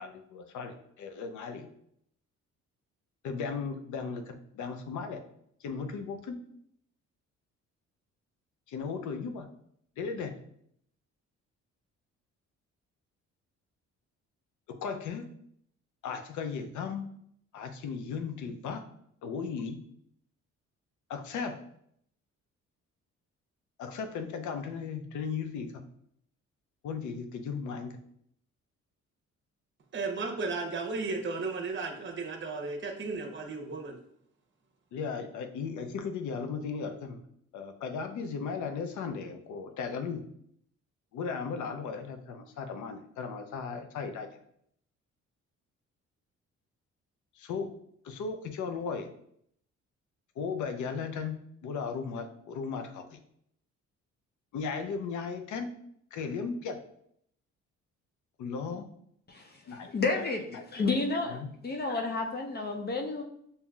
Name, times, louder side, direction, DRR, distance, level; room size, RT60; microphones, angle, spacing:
voice 1, 0.0-1.7 3.2-5.2 5.6-6.4 8.7-9.5 10.0-10.3 14.7-15.2 16.0-17.1 17.5-18.8 19.2-19.8 21.1-21.6 23.8-25.8 26.8-28.0 34.9-37.2 37.5-40.2 41.1-44.3 47.3-47.7 48.0-49.1 50.4-51.4 51.6-53.2 54.5-55.7 56.1-56.8 58.4-58.9 59.7-59.9 60.2-60.6 61.3-61.5, left 5 dB, 75° left, 6 dB, 0.6 m, -36 dB
voice 2, 29.9-34.0, right 3 dB, 40° right, 3 dB, 0.9 m, -34 dB
voice 3, 59.9-60.4 60.7-63.2, left 3 dB, 35° left, 2 dB, 0.6 m, -30 dB
5.4 x 2.8 x 2.3 m, 0.69 s
cardioid pair, 90°, 30 cm